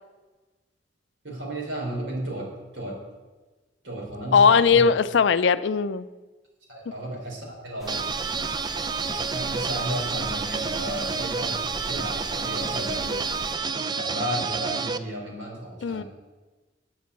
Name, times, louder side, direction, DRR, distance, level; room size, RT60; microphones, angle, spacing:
voice 1, 1.2-3.0 3.8-4.9 6.7-8.0 9.3-13.0 13.9-16.0, right 1 dB, 70° right, -2 dB, 4.0 m, -33 dB
voice 2, 4.3-6.1 13.1-13.2 15.8-16.0, left 6 dB, 70° left, 15 dB, 0.4 m, -19 dB
sound 1, 7.8-13.5, equal, ahead, 1.4 m, -41 dB
sound 2, 7.9-15.0, right 4 dB, 25° right, 0.4 m, -29 dB
9.0 x 7.5 x 8.2 m, 1.2 s
head